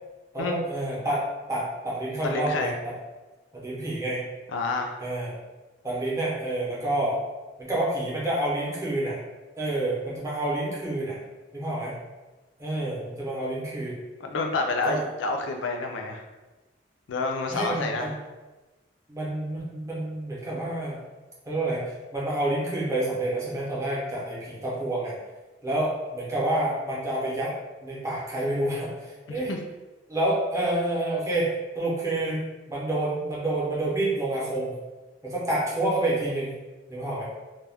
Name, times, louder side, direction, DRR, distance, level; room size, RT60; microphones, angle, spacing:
voice 1, 0.3-2.9 3.5-4.2 5.0-5.3 5.8-7.2 7.6-9.2 9.6-11.2 11.5-11.9 12.6-14.0 14.8-15.0 17.5-18.2 19.1-21.0 21.5-21.8 22.1-25.2 25.6-27.5 27.8-29.5 30.1-31.5 31.8-34.7 35.2-36.5 36.9-37.2, right 1 dB, 15° right, -6 dB, 0.6 m, -28 dB
voice 2, 2.2-2.7 4.5-5.0 14.2-16.2 17.1-18.2 29.3-29.6, left 3 dB, 75° left, 3 dB, 0.4 m, -29 dB
2.2 x 2.1 x 3.4 m, 1.2 s
head